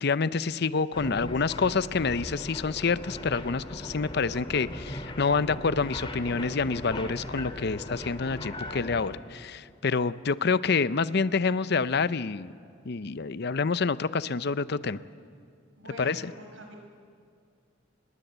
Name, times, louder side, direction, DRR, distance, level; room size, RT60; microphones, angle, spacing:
voice 1, 0.0-12.5 12.8-15.0 16.0-16.2, left 4 dB, 55° left, 15 dB, 0.7 m, -27 dB
sound 1, 0.9-9.2, left 1 dB, 25° left, 2.1 m, -38 dB
voice 2, 15.7-16.8, right 1 dB, 85° right, 3 dB, 5.5 m, -45 dB
27.5 x 21.0 x 8.1 m, 2.2 s
head